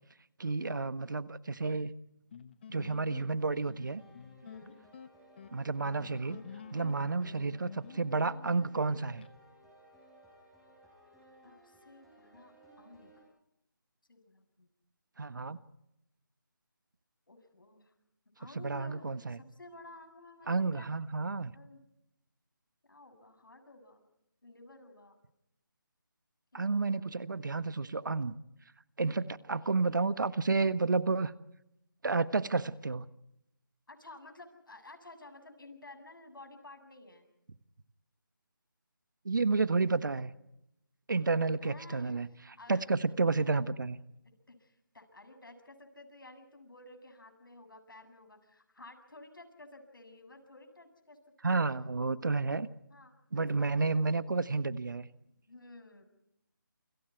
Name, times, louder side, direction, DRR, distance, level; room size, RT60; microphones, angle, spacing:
voice 1, 0.4-1.9 2.7-4.0 5.5-6.4 6.7-9.3 15.2-15.6 18.6-19.4 20.5-21.5 26.5-28.3 29.0-31.3 32.0-33.1 39.2-40.3 41.1-44.0 51.4-52.7 53.3-55.1, right 3 dB, 60° right, 14 dB, 1.4 m, -31 dB
sound 1, 2.3-9.3, left 7 dB, 30° left, 1.3 m, -50 dB
sound 2, 3.6-13.2, right 1 dB, ahead, 6.9 m, -60 dB
voice 2, 4.4-4.8 6.8-7.1 11.4-13.1 14.1-14.7 17.3-17.9 18.4-20.9 21.5-21.8 22.9-24.0 24.4-25.2 26.5-27.1 33.9-37.3 41.6-42.2 42.6-42.9 44.5-51.2 51.5-51.6 52.9-54.1 55.5-56.0, left 2 dB, 70° left, 7 dB, 7.5 m, -53 dB
29.0 x 26.0 x 4.7 m, 0.83 s
figure-of-eight pair, 160°, 11 cm